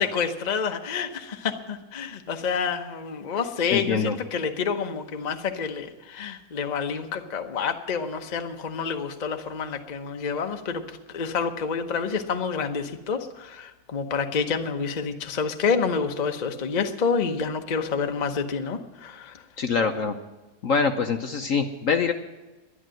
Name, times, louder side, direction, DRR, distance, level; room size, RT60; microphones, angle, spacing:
voice 1, 0.0-10.8 11.1-19.4, left 5 dB, 35° left, 6 dB, 0.7 m, -28 dB
voice 2, 3.7-4.2 19.6-20.2 20.6-22.1, left 5 dB, 55° left, 6 dB, 1.0 m, -24 dB
11.0 x 11.0 x 7.6 m, 1.1 s
omnidirectional pair, 1.9 m